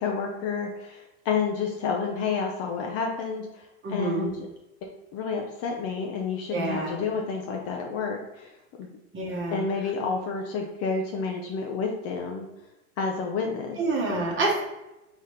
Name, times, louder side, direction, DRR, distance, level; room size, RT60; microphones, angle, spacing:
voice 1, 0.0-4.5 4.8-8.5 8.8-9.0 9.5-12.5 13.0-13.8, left 5 dB, 35° left, 1 dB, 0.6 m, -30 dB
voice 2, 3.8-4.3 6.5-7.0 9.1-9.6 13.8-14.6, right 2 dB, 30° right, -2 dB, 1.1 m, -27 dB
4.0 x 4.0 x 3.3 m, 0.98 s
hypercardioid pair, 110°, 43 cm